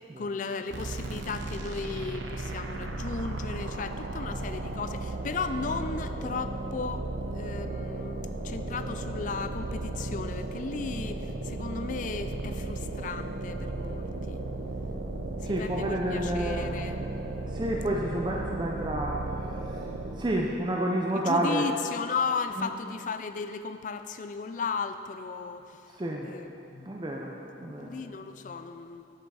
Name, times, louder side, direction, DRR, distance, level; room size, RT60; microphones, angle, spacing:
voice 1, 0.2-14.4 15.4-16.9 21.3-25.8 26.2-26.9 27.6-29.1, left 5 dB, 45° left, 10 dB, 0.3 m, -35 dB
sound 1, 0.7-20.3, right 2 dB, 80° right, 0.7 m, -35 dB
voice 2, 15.4-17.1 17.5-19.9 20.2-21.6 22.5-22.7 25.9-26.3 26.9-28.0, right 1 dB, 25° right, -1 dB, 0.5 m, -30 dB
10.0 x 5.7 x 4.8 m, 2.9 s
head